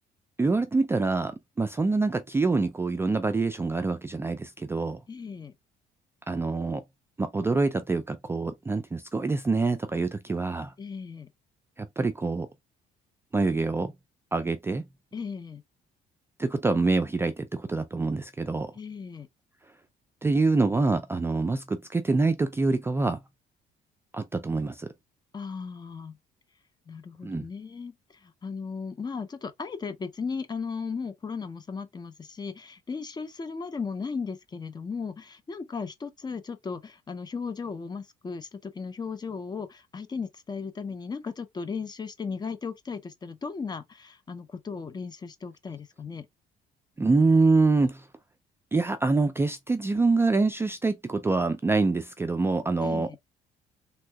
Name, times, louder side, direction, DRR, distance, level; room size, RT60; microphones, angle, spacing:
voice 1, 0.4-5.0 6.3-6.8 7.2-10.7 11.8-12.5 13.3-13.9 14.3-14.8 16.4-18.7 20.2-23.2 24.1-24.9 27.2-27.4 47.0-48.1 48.7-53.1, right 3 dB, 15° right, 0.3 m, -25 dB
voice 2, 5.1-5.5 10.8-11.3 15.1-15.6 18.7-19.3 25.3-26.2 26.9-46.3 52.8-53.2, left 5 dB, 25° left, 0.6 m, -36 dB
3.4 x 2.7 x 2.2 m
cardioid pair, 110°, 17 cm